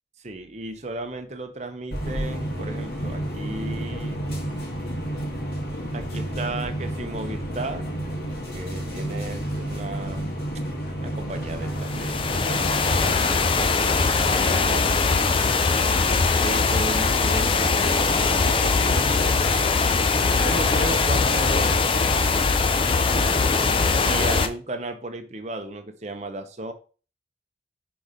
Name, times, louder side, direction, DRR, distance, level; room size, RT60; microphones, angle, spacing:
voice 1, 0.2-4.2 5.9-7.9 8.5-10.4 11.0-14.9 15.8-19.4 20.3-22.5 24.0-26.7, right 2 dB, 40° right, 7 dB, 0.8 m, -35 dB
sound 1, 1.9-13.1, right 1 dB, 60° left, 1.9 m, -30 dB
sound 2, 11.8-24.5, left 4 dB, 30° left, 0.5 m, -21 dB
6.0 x 3.9 x 5.1 m, 0.37 s
head